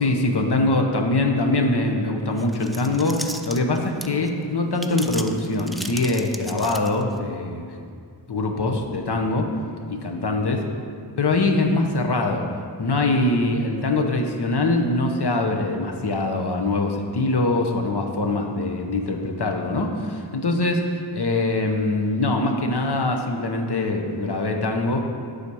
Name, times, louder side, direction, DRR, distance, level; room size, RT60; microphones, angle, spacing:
voice 1, 0.0-7.6 8.3-9.5 9.9-10.6 11.2-12.5 12.8-25.0, left 2 dB, 65° left, 3 dB, 0.9 m, -23 dB
sound 1, 2.4-4.3 4.7-7.2, equal, ahead, 0.3 m, -36 dB
8.4 x 4.1 x 6.2 m, 2.2 s
wide cardioid pair, 60°, 44 cm